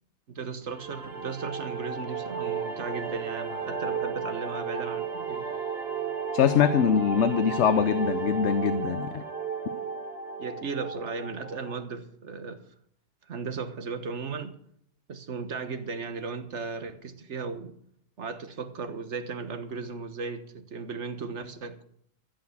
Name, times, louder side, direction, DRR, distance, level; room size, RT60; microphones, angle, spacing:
voice 1, 0.3-5.4 10.4-12.6 13.2-14.5 15.1-17.7 18.2-21.9, right 4 dB, 85° right, 1.5 m, -36 dB
sound 1, 0.7-11.7, right 6 dB, 60° right, 2.4 m, -34 dB
voice 2, 6.3-9.2, left 8 dB, 80° left, 1.1 m, -23 dB
15.0 x 8.5 x 7.1 m
omnidirectional pair, 1.2 m